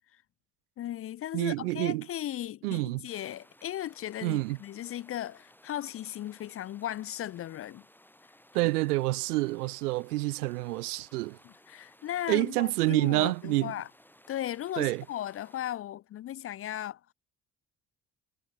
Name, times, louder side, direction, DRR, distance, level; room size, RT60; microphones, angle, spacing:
voice 1, 0.8-7.8 8.6-8.7 11.4-13.9 14.3-17.0, left 12 dB, 30° left, 0.4 m, -37 dB
voice 2, 1.3-2.1 2.6-3.1 4.2-4.6 8.5-11.4 12.3-13.7 14.8-15.0, right 20 dB, 75° right, 0.5 m, -28 dB
sound 1, 3.1-15.6, left 1 dB, 5° left, 5.4 m, -60 dB
figure-of-eight pair, 50°, 46 cm